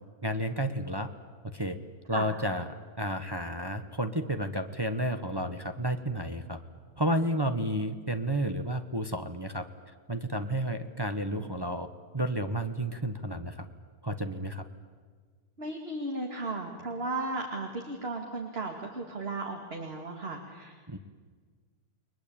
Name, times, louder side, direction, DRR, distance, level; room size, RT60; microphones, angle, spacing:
voice 1, 0.2-1.1 1.5-1.8 2.1-2.7 3.0-6.6 7.0-9.6 10.1-11.9 12.1-13.7 14.0-14.6 20.9-21.0, right 1 dB, 20° right, 7 dB, 1.0 m, -31 dB
voice 2, 11.1-11.4 15.6-20.7, right 2 dB, 40° right, 2 dB, 2.5 m, -35 dB
30.0 x 21.5 x 8.8 m, 1.5 s
omnidirectional pair, 1.6 m